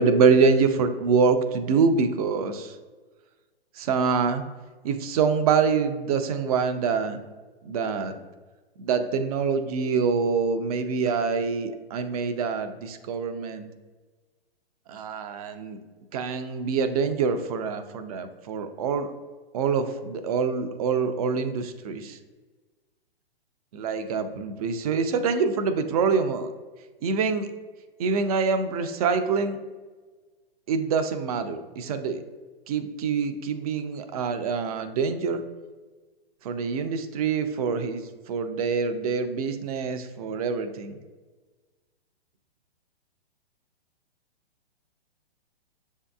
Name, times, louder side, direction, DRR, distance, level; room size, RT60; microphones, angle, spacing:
voice 1, 0.0-2.7 3.8-4.4 4.8-7.2 7.6-8.2 8.8-13.7 14.9-15.8 16.1-19.1 19.5-22.2 23.7-26.5 27.0-27.5 28.0-29.6 30.7-32.2 32.7-35.4 36.4-40.9, right 5 dB, 40° right, 9 dB, 0.4 m, -25 dB
6.8 x 2.7 x 2.3 m, 1.3 s
hypercardioid pair, 120°, 31 cm